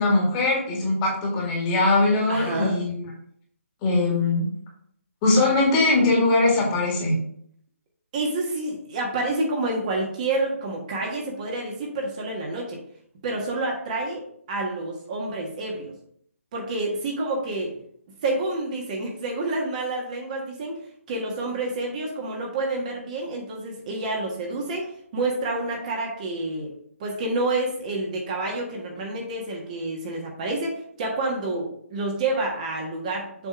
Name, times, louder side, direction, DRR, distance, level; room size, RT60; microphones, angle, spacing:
voice 1, 0.0-3.0 3.8-4.5 5.2-7.1, left 2 dB, 20° left, -2 dB, 2.0 m, -21 dB
voice 2, 2.3-2.8 8.1-12.8 13.2-14.2 14.5-15.9 16.5-17.7 18.2-20.8 21.1-26.7 27.0-33.5, right 2 dB, 30° right, 0 dB, 1.5 m, -28 dB
7.2 x 3.5 x 4.7 m, 0.64 s
figure-of-eight pair, 155°, 8 cm